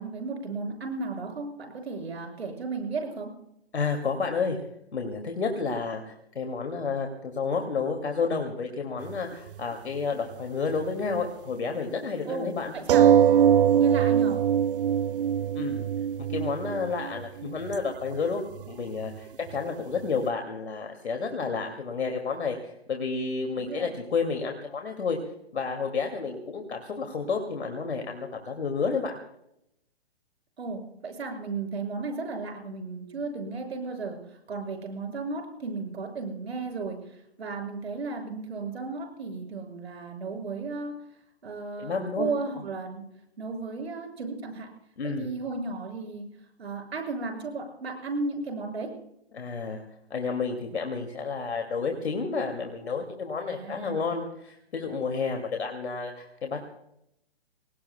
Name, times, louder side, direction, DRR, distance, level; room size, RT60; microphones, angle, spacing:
voice 1, 0.0-3.3 12.2-13.1 13.8-14.4 23.6-24.0 30.6-34.2 34.5-37.0 37.4-40.9 41.4-43.0 43.4-44.7 45.0-46.3 46.6-48.9 53.5-54.0, right 3 dB, 75° right, 3 dB, 6.6 m, -34 dB
voice 2, 3.7-4.6 4.9-12.7 15.5-15.8 16.3-25.2 25.5-29.2 41.8-42.3 45.0-45.3 49.3-49.8 50.1-56.6, left 4 dB, 85° left, 3 dB, 2.5 m, -30 dB
sound 1, 9.0-9.2 9.5-9.6 12.9-17.9 18.3-18.4 18.6-18.7 19.0-19.2 19.5-19.6, right 9 dB, 55° right, 0.5 m, -22 dB
28.0 x 19.0 x 2.3 m, 0.79 s
hypercardioid pair, 140°, 32 cm